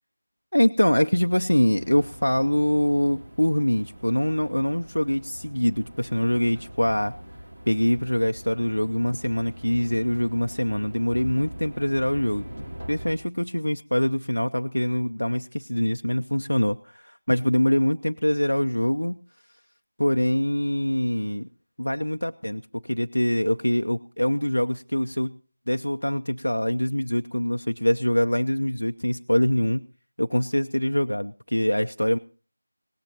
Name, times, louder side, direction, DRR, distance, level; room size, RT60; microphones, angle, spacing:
voice 1, 0.5-7.1 7.7-12.5 12.9-19.2 20.0-21.5 21.8-25.3 25.7-29.8 30.2-32.2, equal, 80° left, 7 dB, 0.6 m, -24 dB
sound 1, 1.7-13.1, right 1 dB, 55° right, 2.9 m, -42 dB
18.0 x 17.5 x 2.9 m, 0.37 s
figure-of-eight pair, 170°, 0 cm